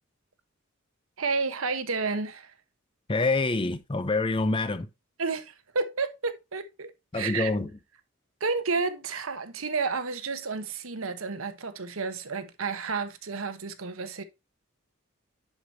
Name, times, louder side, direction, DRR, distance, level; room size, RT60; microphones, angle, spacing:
voice 1, 1.2-2.5 5.2-7.5 8.4-14.2, right 4 dB, 80° right, 1.1 m, -31 dB
voice 2, 3.1-4.9 7.1-7.8, left 3 dB, 25° left, 0.6 m, -26 dB
11.0 x 5.0 x 2.8 m
head